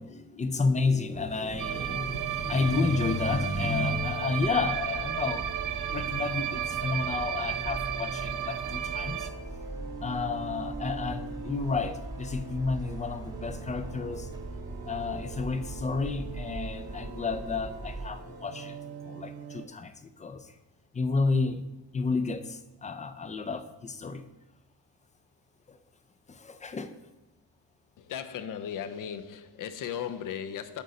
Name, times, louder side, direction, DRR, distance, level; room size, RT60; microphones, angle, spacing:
voice 1, 0.0-5.5 5.9-9.3 10.0-14.3 14.9-18.8 19.0-20.5 20.9-21.7 21.9-24.2 25.7-25.8 26.3-26.9, left 4 dB, 20° left, 9 dB, 0.4 m, -31 dB
sound 1, 1.1-19.7, right 4 dB, 70° right, 0.9 m, -43 dB
sound 2, 1.5-18.1, right 2 dB, 10° right, 0.7 m, -42 dB
sound 3, 1.6-9.3, right 11 dB, 55° right, 0.5 m, -33 dB
voice 2, 28.0-30.8, left 8 dB, 55° left, 11 dB, 0.6 m, -36 dB
8.2 x 4.1 x 4.9 m, 0.98 s
cardioid pair, 125°, 39 cm